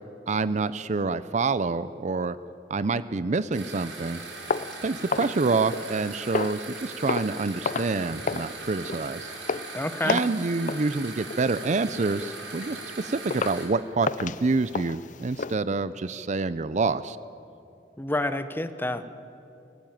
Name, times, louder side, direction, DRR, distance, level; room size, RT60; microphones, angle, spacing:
voice 1, 0.3-2.4 2.7-4.2 4.8-9.3 10.0-17.2, right 3 dB, 45° right, 15 dB, 0.5 m, -27 dB
sound 1, 3.5-13.6, right 3 dB, 80° right, 7.1 m, -40 dB
sound 2, 4.5-6.0 6.3-6.7 7.1-7.4 7.6-8.0 8.3-8.5 8.8-9.1 9.5-9.7 10.1-10.4 10.7-10.9 11.3-11.5 12.0-12.1 12.6-12.7 13.3-13.6 14.0-15.5, left 4 dB, 45° left, 0.5 m, -31 dB
voice 2, 9.7-10.2 18.0-19.1, left 1 dB, 10° left, 11 dB, 1.0 m, -28 dB
24.5 x 16.5 x 9.3 m, 2.7 s
head